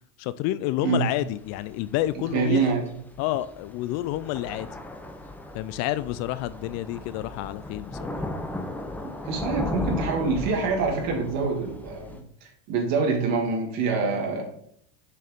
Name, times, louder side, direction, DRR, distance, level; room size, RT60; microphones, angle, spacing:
voice 1, 0.2-2.7 3.2-4.7 5.5-8.3, left 14 dB, 50° left, 15 dB, 0.4 m, -29 dB
Thunder / Rain, 1.2-12.2, left 1 dB, 5° left, 0.7 m, -36 dB
voice 2, 2.3-2.8 9.0-14.4, right 4 dB, 55° right, 1 dB, 2.5 m, -26 dB
6.6 x 6.4 x 3.6 m, 0.69 s
supercardioid pair, 120°, 34 cm